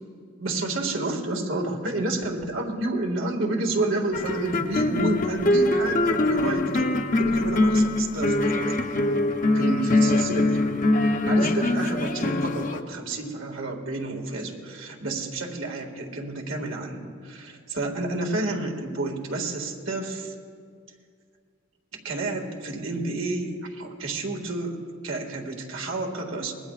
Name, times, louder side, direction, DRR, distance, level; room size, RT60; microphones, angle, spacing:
voice 1, 0.4-8.8 9.5-10.6 11.2-20.3 22.0-24.8 25.0-26.5, right 2 dB, 85° right, 2 dB, 2.0 m, -30 dB
sound 1, 4.1-12.8, left 2 dB, 40° left, 0.7 m, -23 dB
25.5 x 20.5 x 2.4 m, 2.2 s
head